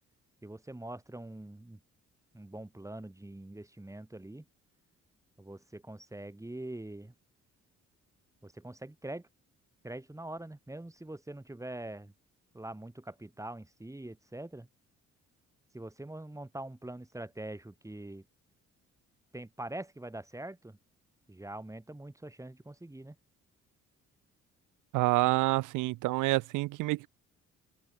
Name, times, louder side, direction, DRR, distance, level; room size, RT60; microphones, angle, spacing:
voice 1, 0.4-1.8 2.3-4.4 5.4-7.1 8.4-9.3 9.8-12.1 12.5-14.7 15.7-18.2 19.3-20.8 21.3-23.2, right 1 dB, 10° right, 4.9 m, -43 dB
voice 2, 24.9-27.1, right 20 dB, 85° right, 0.5 m, -28 dB
cardioid pair, 90°, 30 cm